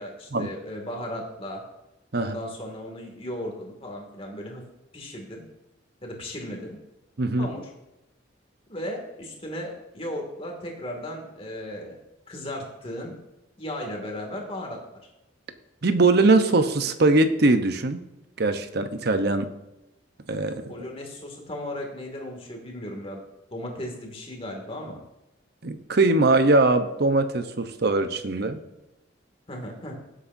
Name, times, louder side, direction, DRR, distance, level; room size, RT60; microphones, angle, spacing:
voice 1, 0.0-1.6 2.2-4.6 4.9-5.4 6.0-6.8 7.4-7.7 8.7-12.0 12.3-13.2 13.6-14.8 20.7-23.2 23.5-25.0 29.5-29.9, left 1 dB, 30° left, 1 dB, 2.3 m, -36 dB
voice 2, 7.2-7.5 15.8-18.0 18.4-19.5 20.3-20.7 25.6-28.6, right 2 dB, 55° right, 9 dB, 0.9 m, -21 dB
17.5 x 8.2 x 2.7 m, 0.96 s
head